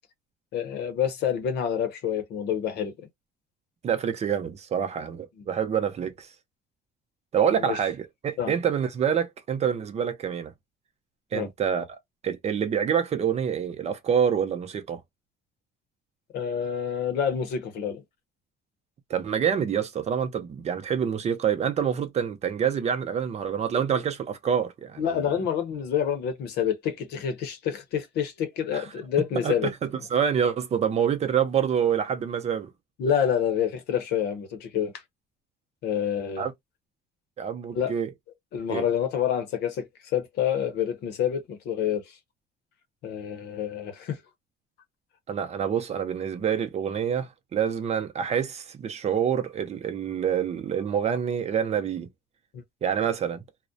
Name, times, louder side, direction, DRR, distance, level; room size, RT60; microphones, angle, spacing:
voice 1, 0.5-2.9 7.5-7.8 8.4-8.5 11.3-11.5 16.3-18.0 25.0-29.7 33.0-34.9 35.8-36.4 37.7-37.9 38.5-39.9 40.1-42.2 43.0-44.2 52.5-52.6, left 8 dB, 75° left, 0.7 m, -27 dB
voice 2, 3.8-6.3 7.3-10.5 11.3-11.9 12.2-15.0 19.1-25.3 28.7-28.8 29.4-32.7 36.4-36.5 37.4-38.1 38.7-38.9 45.3-52.1 52.8-53.4, right 8 dB, 40° right, 0.6 m, -27 dB
2.3 x 2.1 x 2.6 m
cardioid pair, 110°, 17 cm